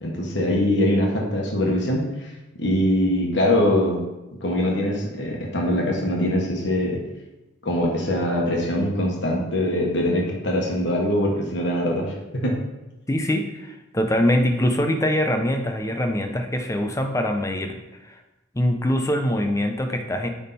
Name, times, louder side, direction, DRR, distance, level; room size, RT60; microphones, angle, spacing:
voice 1, 0.0-2.3 2.6-4.0 4.4-7.0 7.6-12.1 12.4-12.6, left 1 dB, 60° left, -1 dB, 1.3 m, -22 dB
voice 2, 13.1-17.8 18.0-18.2 18.5-20.3, left 1 dB, 15° left, 5 dB, 0.6 m, -23 dB
9.2 x 3.7 x 4.2 m, 1.0 s
head